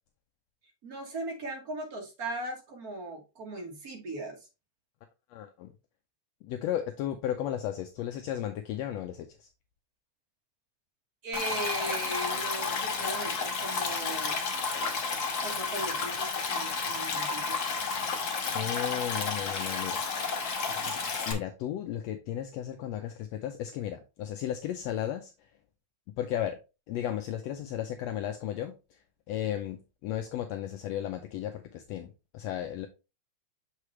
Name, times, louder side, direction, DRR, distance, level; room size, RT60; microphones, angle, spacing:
voice 1, 0.8-4.4 11.2-14.4 15.4-17.6 17.9-18.1, right 2 dB, 50° right, 1.1 m, -38 dB
voice 2, 5.3-5.7 6.4-9.5 18.5-20.0 20.8-21.0 21.3-25.3 26.2-26.6 26.9-29.0 29.3-32.9, left 11 dB, 75° left, 1.6 m, -34 dB
Stream, 11.3-21.3, left 4 dB, 55° left, 1.1 m, -31 dB
6.7 x 4.9 x 3.1 m
omnidirectional pair, 3.4 m